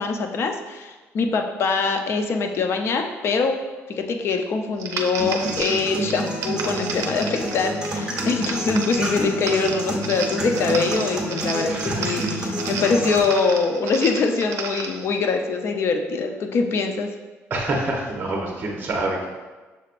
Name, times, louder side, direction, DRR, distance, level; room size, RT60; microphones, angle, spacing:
voice 1, 0.0-3.6 3.9-17.1, left 4 dB, 55° left, 5 dB, 0.5 m, -23 dB
sound 1, 4.8-15.1, right 5 dB, 70° right, 0.5 m, -33 dB
sound 2, 5.2-13.2, right 1 dB, 15° right, 1.1 m, -29 dB
voice 2, 11.7-12.0 17.5-19.3, right 2 dB, 35° right, -1 dB, 0.8 m, -26 dB
6.7 x 3.2 x 2.5 m, 1.3 s
cardioid pair, 110°, 5 cm